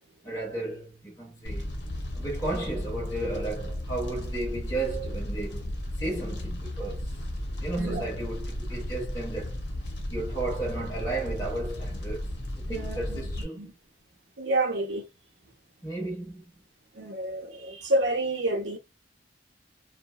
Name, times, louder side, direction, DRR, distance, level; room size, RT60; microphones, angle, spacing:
voice 1, 0.2-1.7 2.2-7.1 7.6-9.6 10.1-12.3 12.7-13.6 15.8-16.4, right 2 dB, 20° left, 1.1 m, -34 dB
Fire, 1.4-13.4, left 1 dB, 70° left, 0.8 m, -34 dB
voice 2, 7.8-8.1 12.7-13.3 13.6-13.7 14.4-15.0 17.0-18.8, right 1 dB, 75° right, 0.7 m, -29 dB
2.8 x 2.2 x 2.2 m
head